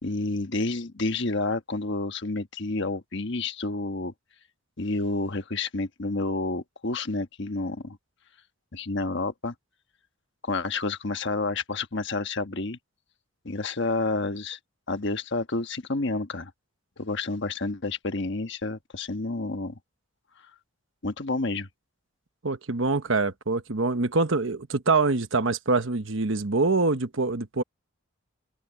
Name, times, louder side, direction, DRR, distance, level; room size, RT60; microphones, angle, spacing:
voice 1, 0.0-4.1 4.8-8.0 8.7-9.5 10.4-12.8 13.4-14.6 14.9-16.5 17.0-19.8 21.0-21.7, left 2 dB, 55° left, 1.3 m, -29 dB
voice 2, 22.4-27.6, right 3 dB, 60° right, 1.1 m, -25 dB
head